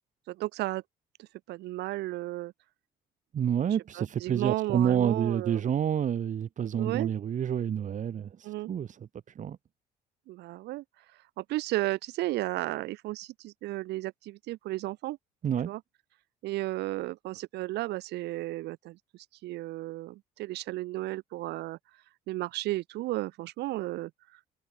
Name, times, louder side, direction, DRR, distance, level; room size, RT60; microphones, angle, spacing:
voice 1, 0.3-0.8 1.2-2.5 4.2-5.6 6.8-7.1 8.4-8.7 10.3-10.8 11.4-15.2 15.6-15.8 16.4-19.0 19.4-21.8 22.3-24.1, right 18 dB, 85° right, 4.9 m, -33 dB
voice 2, 3.3-8.4 8.7-9.1 9.3-9.6 15.4-15.7, right 9 dB, 50° right, 4.7 m, -28 dB
cardioid pair, 110°, 17 cm